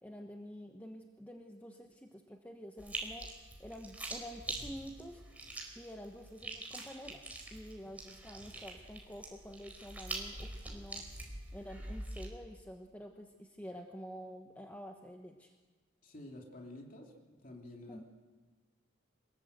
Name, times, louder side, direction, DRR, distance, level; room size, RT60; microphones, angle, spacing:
voice 1, 0.0-3.3 3.6-5.2 5.8-7.2 7.5-11.0 11.5-15.5 17.9-18.0, equal, 10° left, 2 dB, 1.1 m, -48 dB
sound 1, 2.8-12.3, right 2 dB, 10° right, 4.4 m, -44 dB
voice 2, 16.0-18.0, left 1 dB, 45° left, 0 dB, 2.9 m, -50 dB
25.5 x 21.0 x 8.0 m, 1.3 s
head